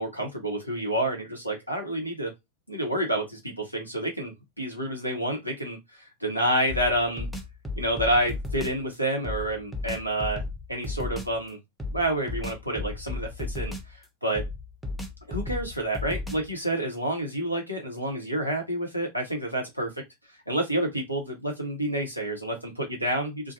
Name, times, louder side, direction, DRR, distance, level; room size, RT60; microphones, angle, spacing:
voice 1, 0.0-2.3 2.7-7.3 7.8-10.4 10.7-11.6 11.9-13.7 14.2-14.4 15.3-19.9 20.5-23.5, right 1 dB, 90° right, 1.0 m, -29 dB
sound 1, 6.7-8.8 9.2-11.4 11.8-14.0 14.3-16.6, left 2 dB, ahead, 0.6 m, -34 dB
2.5 x 2.4 x 2.7 m
figure-of-eight pair, 90°, 0 cm